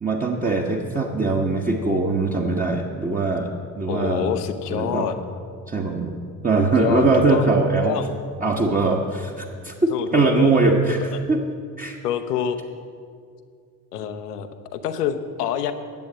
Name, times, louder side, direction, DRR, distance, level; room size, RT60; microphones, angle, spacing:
voice 1, 0.0-3.5 3.8-4.3 4.7-5.1 5.7-6.2 6.4-7.9 8.4-9.7 10.1-11.4 11.8-12.0, right 3 dB, 15° right, -1 dB, 1.1 m, -21 dB
voice 2, 3.9-5.1 6.6-7.5 7.8-8.1 9.9-11.2 12.0-12.6 13.9-15.7, left 9 dB, 75° left, 9 dB, 0.9 m, -27 dB
10.5 x 8.3 x 7.3 m, 2.2 s
figure-of-eight pair, 50°, 48 cm